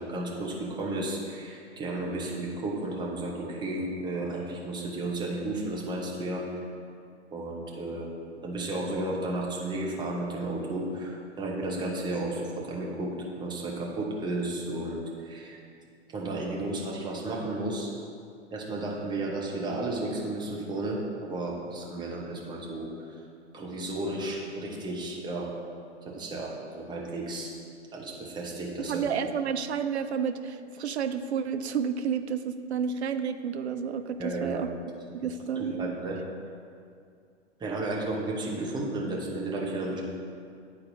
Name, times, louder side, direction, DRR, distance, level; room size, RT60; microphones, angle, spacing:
voice 1, 0.0-6.5 7.3-8.1 8.4-15.6 16.1-17.9 18.5-23.2 23.5-25.5 26.0-27.5 27.9-29.3 34.2-34.7 35.6-36.2 37.6-40.0, right 2 dB, 10° right, -3 dB, 0.9 m, -33 dB
voice 2, 28.9-34.7 35.1-35.9, right 7 dB, 70° right, 9 dB, 0.5 m, -30 dB
10.5 x 4.1 x 2.7 m, 2.3 s
figure-of-eight pair, 100°, 35 cm